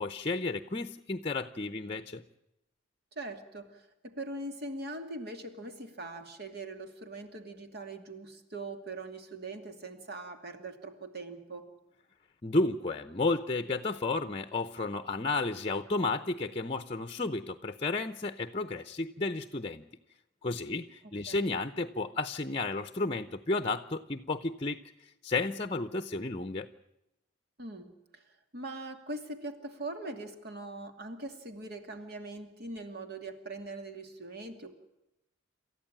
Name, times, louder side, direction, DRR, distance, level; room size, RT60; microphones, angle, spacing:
voice 1, 0.0-2.2 12.4-19.9 20.4-24.8 25.2-26.7, left 3 dB, 30° left, 9 dB, 0.8 m, -32 dB
voice 2, 3.2-11.7 21.0-21.4 27.6-28.2 28.5-34.7, right 2 dB, 55° right, 5 dB, 2.6 m, -42 dB
28.0 x 14.0 x 8.8 m, 0.90 s
head